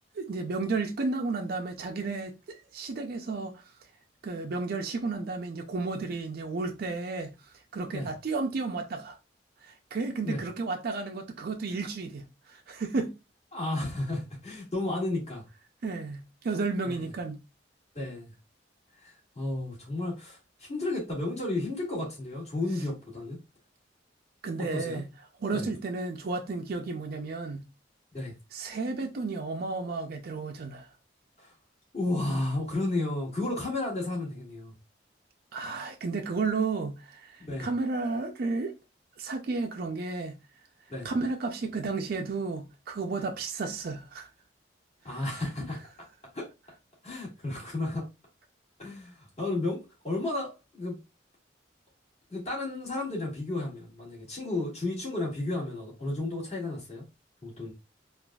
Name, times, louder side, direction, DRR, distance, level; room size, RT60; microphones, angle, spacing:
voice 1, 0.2-2.3 2.7-3.5 4.2-7.3 7.7-9.2 9.6-12.2 12.5-13.1 15.8-17.4 24.4-25.1 25.4-27.6 28.5-30.9 35.5-38.7 39.2-40.3 41.0-44.3 45.3-45.4, right 3 dB, 55° right, 0.4 m, -32 dB
voice 2, 13.5-15.4 16.8-17.1 18.0-18.3 19.0-20.4 20.7-23.4 24.6-25.0 25.5-25.7 28.1-28.3 31.4-31.5 31.9-34.7 37.4-37.7 40.9-41.1 45.0-45.8 46.3-46.5 47.0-48.1 48.8-51.0 52.3-57.0 57.4-57.7, left 2 dB, 40° left, 1.8 m, -32 dB
3.9 x 2.4 x 2.3 m
head